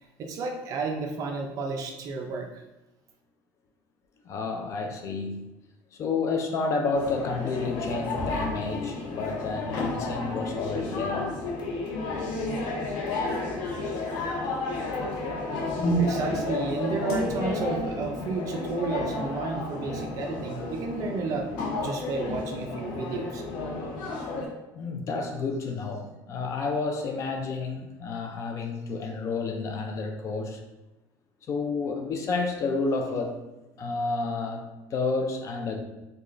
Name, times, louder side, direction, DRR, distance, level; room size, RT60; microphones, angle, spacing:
voice 1, 0.2-2.6 16.0-23.4, right 4 dB, 45° right, 3 dB, 0.5 m, -32 dB
voice 2, 4.2-5.5 5.9-11.4 24.7-30.6 31.5-33.4 33.8-35.8, left 4 dB, 40° left, 4 dB, 0.5 m, -30 dB
sound 1, 6.9-24.5, left 2 dB, 75° left, 0.8 m, -31 dB
4.7 x 2.4 x 2.5 m, 1.0 s
cardioid pair, 150°, 8 cm